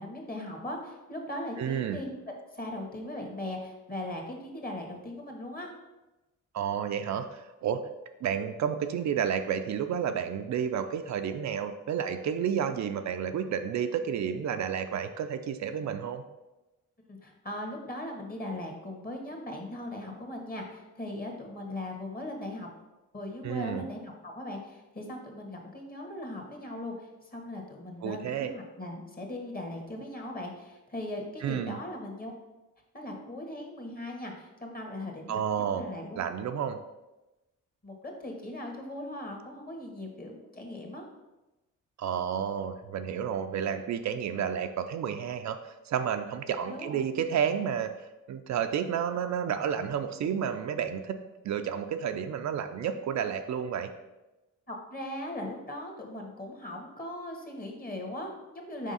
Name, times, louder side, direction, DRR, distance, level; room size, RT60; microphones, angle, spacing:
voice 1, 0.0-2.2 2.5-5.7 17.1-22.7 23.1-32.3 32.9-36.2 37.8-41.0 46.6-47.0 54.7-58.9, left 1 dB, 30° left, 1 dB, 1.6 m, -39 dB
voice 2, 1.6-2.0 6.5-7.8 8.2-16.2 23.4-23.8 28.0-28.5 31.4-31.8 35.3-35.9 36.1-36.8 42.0-47.9 48.3-51.2 51.4-53.9, right 8 dB, 60° right, 7 dB, 0.5 m, -31 dB
5.0 x 3.6 x 5.5 m, 1.0 s
cardioid pair, 80°, 31 cm